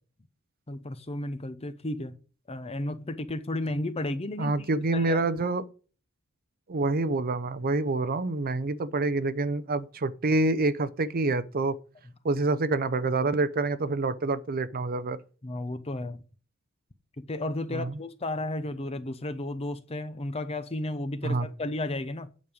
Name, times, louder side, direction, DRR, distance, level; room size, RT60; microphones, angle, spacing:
voice 1, 0.7-2.2 2.5-4.5 4.9-5.2 15.4-16.2 17.2-22.3, left 1 dB, 30° left, 0.7 m, -33 dB
voice 2, 4.4-5.6 6.7-11.8 12.2-15.2 17.7-18.0 21.2-21.5, right 2 dB, 45° right, 0.6 m, -27 dB
9.5 x 5.3 x 5.0 m
head